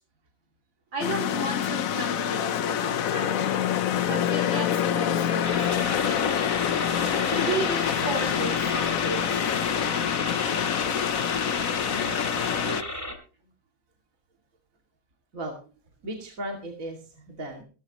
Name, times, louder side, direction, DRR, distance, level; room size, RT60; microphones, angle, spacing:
voice 1, 0.9-3.5 4.1-6.4 7.2-9.3, right 2 dB, 60° right, 4 dB, 5.0 m, -34 dB
sound 1, 1.0-12.8, left 9 dB, 65° left, 0.9 m, -26 dB
sound 2, 5.4-13.1, equal, 5° right, 3.0 m, -34 dB
voice 2, 11.9-13.0 15.3-15.5 16.0-17.6, right 1 dB, 40° right, 1 dB, 2.6 m, -37 dB
16.5 x 15.0 x 3.0 m, 0.36 s
omnidirectional pair, 2.3 m